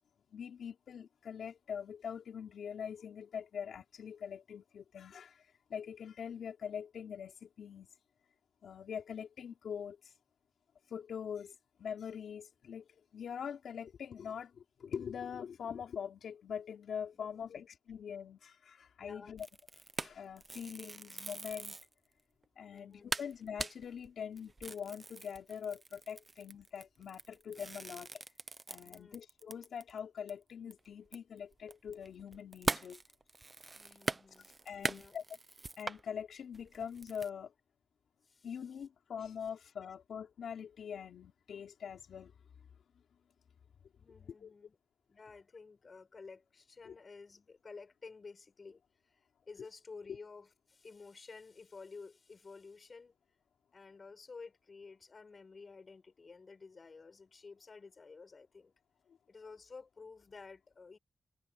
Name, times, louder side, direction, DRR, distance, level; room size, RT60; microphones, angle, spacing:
voice 1, 0.3-7.9 8.6-10.1 10.9-19.5 20.0-21.8 22.6-28.2 28.7-33.0 34.6-35.2 35.8-37.5 38.4-42.3 44.4-44.5 46.8-46.9, left 7 dB, 80° left, 3.4 m, -43 dB
voice 2, 17.1-17.6 19.0-19.4 22.7-23.1 28.8-29.2 33.8-34.5 34.7-35.2 38.2-38.5 44.0-44.8 45.1-53.1 53.7-58.7 59.3-61.0, left 4 dB, 35° left, 5.8 m, -53 dB
sound 1, 19.4-21.9 22.4-22.5 22.8-22.9 23.1-30.0 30.3-30.4 30.7-36.0 36.5-37.3, right 3 dB, 25° right, 0.7 m, -41 dB
wide cardioid pair, 140°, 0 cm